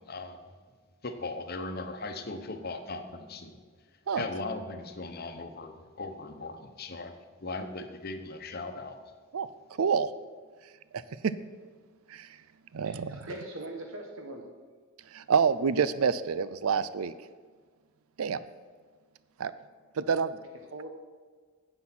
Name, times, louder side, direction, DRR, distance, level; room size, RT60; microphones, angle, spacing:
voice 1, 0.1-0.4 1.0-3.6 4.2-9.0, left 3 dB, 45° left, 7 dB, 1.0 m, -38 dB
voice 2, 9.3-10.1 10.9-11.3 12.1-12.4 12.7-13.3 15.0-17.1 18.2-18.4 19.4-19.5 19.9-20.4, right 6 dB, 90° right, 15 dB, 0.5 m, -28 dB
voice 3, 13.1-14.5 20.7-20.9, right 2 dB, 75° right, 2 dB, 1.1 m, -40 dB
9.6 x 8.1 x 6.1 m, 1.5 s
head